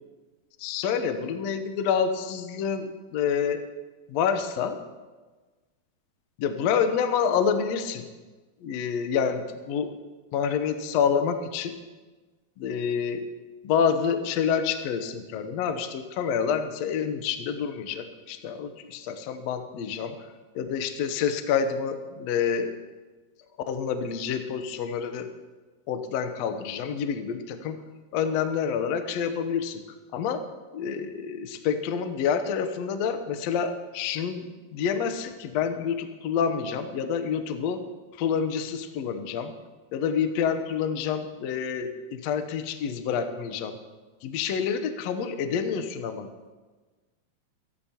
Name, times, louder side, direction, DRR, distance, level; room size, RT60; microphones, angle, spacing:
voice 1, 0.6-3.6 4.1-4.8 6.4-8.1 8.6-9.9 10.3-11.8 12.6-13.3 13.6-20.2 20.5-22.7 23.7-25.3 25.9-27.8 28.1-29.8 30.1-30.4 30.7-37.8 38.2-39.5 39.9-43.8 44.2-46.3, left 7 dB, 85° left, 8 dB, 1.5 m, -28 dB
26.0 x 12.0 x 2.9 m, 1.3 s
omnidirectional pair, 4.3 m